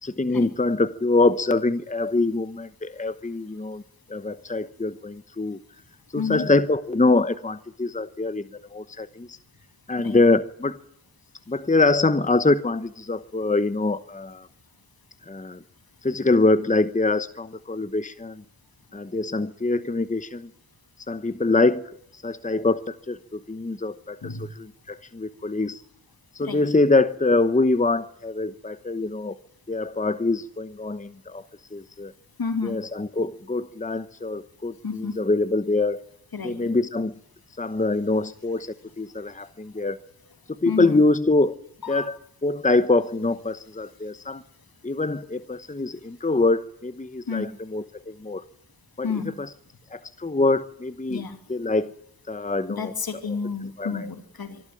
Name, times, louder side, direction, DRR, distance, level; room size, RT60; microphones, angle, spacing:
voice 1, 0.0-3.8 4.1-5.6 6.1-9.4 9.9-10.8 11.5-14.5 15.3-15.6 16.0-18.4 18.9-20.5 21.1-21.8 22.1-25.8 26.3-29.4 29.7-31.4 31.7-32.1 32.6-36.0 36.4-37.1 37.6-40.0 40.6-41.5 41.9-42.2 42.4-44.4 44.8-48.4 49.0-49.1 49.4-49.5 49.9-51.2 51.5-51.9 52.3-52.9 53.8-54.0, left 2 dB, 20° left, 12 dB, 1.0 m, -24 dB
voice 2, 6.2-6.5 10.0-10.2 24.2-24.5 26.4-26.6 32.4-32.8 34.8-35.2 36.3-36.7 40.6-41.0 41.8-42.1 47.3-47.5 49.0-49.4 51.1-51.4 52.7-54.6, left 5 dB, 70° left, 7 dB, 2.7 m, -30 dB
24.0 x 12.0 x 9.1 m, 0.73 s
cardioid pair, 55°, 37 cm